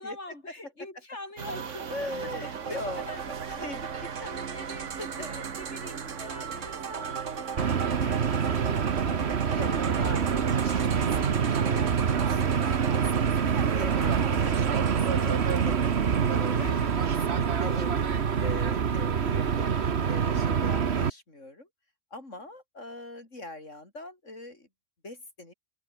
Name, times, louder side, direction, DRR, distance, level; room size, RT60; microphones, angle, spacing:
voice 1, 0.0-3.2 3.5-10.1 12.3-12.6 16.6-17.6 18.3-18.7, left 2 dB, 65° left, 6.7 m, -46 dB
sound 1, 1.4-18.6, right 7 dB, 80° right, 1.7 m, -37 dB
voice 2, 1.9-4.1 5.0-5.1 8.0-8.3 9.5-12.6 12.9-16.9 17.3-21.7 22.1-24.7 25.0-25.5, left 2 dB, 85° left, 5.9 m, -42 dB
sound 2, 7.6-21.1, right 7 dB, 60° right, 1.4 m, -26 dB
omnidirectional pair, 1.2 m